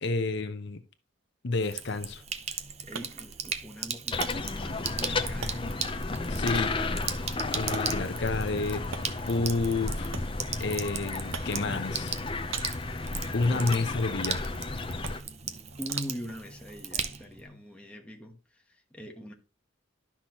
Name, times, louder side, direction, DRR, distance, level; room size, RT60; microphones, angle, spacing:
voice 1, 0.0-0.8 1.4-2.2 6.3-6.7 7.5-8.9 9.3-10.2 10.6-12.2 13.3-14.5, left 3 dB, 55° left, 0.7 m, -30 dB
Sink (filling or washing), 1.5-17.5, right 7 dB, 30° right, 0.6 m, -38 dB
sound 1, 2.4-18.0, right 6 dB, 80° right, 0.8 m, -47 dB
voice 2, 2.5-7.1 15.8-19.3, equal, 5° left, 1.2 m, -43 dB
sound 2, 4.1-15.2, left 3 dB, 25° left, 0.6 m, -33 dB
11.5 x 5.9 x 3.0 m
head